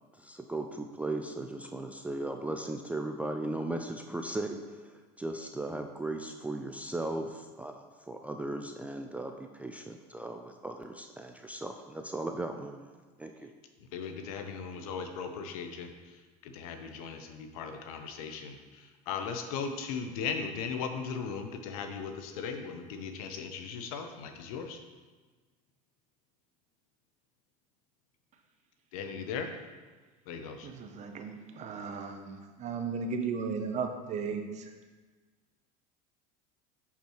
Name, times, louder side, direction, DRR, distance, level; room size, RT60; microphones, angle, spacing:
voice 1, 0.2-12.9 13.2-13.5, right 2 dB, 10° right, 4 dB, 0.3 m, -37 dB
voice 2, 13.9-15.9 16.4-18.6 19.1-24.8 28.9-29.5 30.3-30.7, left 6 dB, 75° left, 6 dB, 0.7 m, -37 dB
voice 3, 30.6-34.7, right 5 dB, 40° right, 6 dB, 0.7 m, -36 dB
6.2 x 5.7 x 3.0 m, 1.3 s
supercardioid pair, 100°, 19 cm